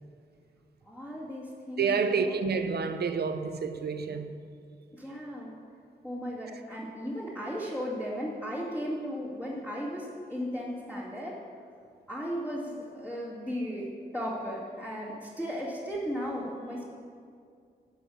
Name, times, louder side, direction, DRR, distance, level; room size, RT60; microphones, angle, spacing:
voice 1, 0.8-2.4 4.9-5.5 6.0-11.4 12.1-13.8 14.1-16.8, equal, 15° left, -9 dB, 2.3 m, -36 dB
voice 2, 1.8-4.3, right 5 dB, 75° right, 8 dB, 0.7 m, -29 dB
11.0 x 5.7 x 7.1 m, 2.2 s
cardioid pair, 85°, 17 cm